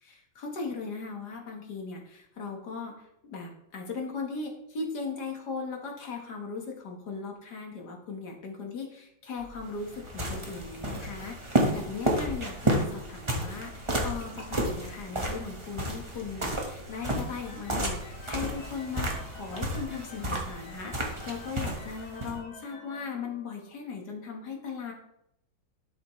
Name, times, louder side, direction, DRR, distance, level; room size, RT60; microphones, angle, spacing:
voice 1, 0.0-2.9 3.2-24.9, left 4 dB, 55° left, 1 dB, 2.0 m, -38 dB
sound 1, 9.4-22.4, right 1 dB, 20° right, 1.1 m, -32 dB
sound 2, 16.9-23.9, left 4 dB, 85° left, 3.3 m, -50 dB
12.0 x 6.1 x 3.2 m, 0.76 s
omnidirectional pair, 2.1 m